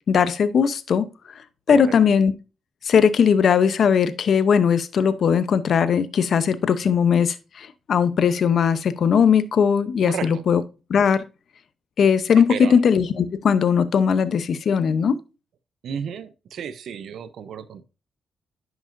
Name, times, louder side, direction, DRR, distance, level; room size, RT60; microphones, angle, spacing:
voice 1, 0.1-1.1 1.7-2.3 2.8-10.6 10.9-11.2 12.0-15.2, left 7 dB, 65° left, 0.7 m, -19 dB
voice 2, 10.1-10.4 12.5-12.8 15.8-17.8, right 7 dB, 75° right, 0.7 m, -32 dB
10.5 x 6.1 x 2.6 m
cardioid pair, 90°, 0 cm